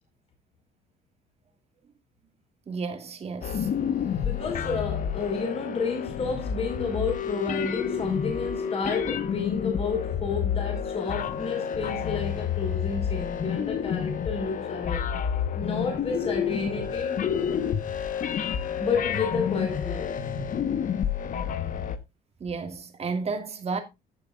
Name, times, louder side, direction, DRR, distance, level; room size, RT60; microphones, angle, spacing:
voice 1, 2.7-3.7 22.4-23.8, right 4 dB, 40° right, 2.4 m, -32 dB
sound 1, 3.4-22.0, left 8 dB, 50° left, 1.2 m, -29 dB
voice 2, 4.2-15.0 15.5-17.3 18.8-20.3, left 4 dB, 35° left, 4.7 m, -31 dB
15.5 x 7.2 x 2.4 m
cardioid pair, 110°, 17 cm